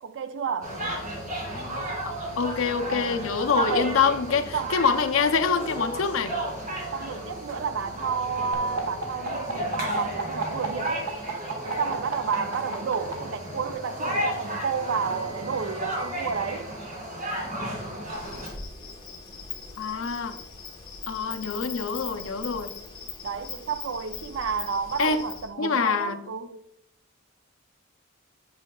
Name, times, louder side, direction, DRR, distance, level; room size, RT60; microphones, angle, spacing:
voice 1, 0.0-0.8 3.6-4.0 4.5-4.8 6.9-11.1 11.6-16.7 23.2-26.6, right 6 dB, 60° right, 0.4 m, -31 dB
sound 1, 0.6-18.5, equal, 40° right, 2.3 m, -33 dB
voice 2, 2.4-6.4 19.8-20.4 21.1-22.7 25.0-25.2 25.6-26.2, left 5 dB, 70° left, 0.5 m, -25 dB
sound 2, 8.5-13.1 14.3-16.5, right 3 dB, 85° right, 1.2 m, -35 dB
Insect, 18.1-25.5, left 5 dB, 20° left, 1.1 m, -40 dB
8.3 x 5.6 x 2.3 m
head